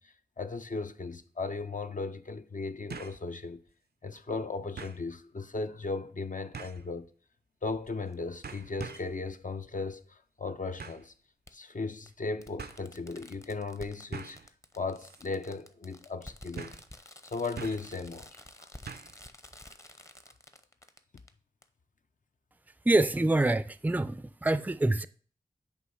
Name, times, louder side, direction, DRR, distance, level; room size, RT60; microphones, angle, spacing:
voice 1, 0.0-3.6 4.0-7.1 7.6-11.1 11.5-14.4 14.7-16.7 17.2-18.4, left 3 dB, 55° left, 0.6 m, -36 dB
sound 1, 1.0-1.1 2.9-3.2 3.7-3.8 4.8-5.0 6.5-6.9 7.8-8.1 8.4-9.2 10.8-11.1 12.1-12.2 12.6-12.8 14.1-14.5 15.0-15.2 15.5-15.6 16.6-16.9 17.6-18.0 18.9-19.2 19.5-19.6, right 5 dB, 75° right, 0.5 m, -43 dB
Fireworks, 8.1-8.2 9.8-9.9 11.5-11.6 12.1-12.2 12.4-21.3 21.6-21.7, left 1 dB, 20° left, 0.7 m, -51 dB
voice 2, 22.9-25.1, right 2 dB, 10° right, 0.4 m, -26 dB
8.2 x 3.2 x 5.5 m
cardioid pair, 40°, 16 cm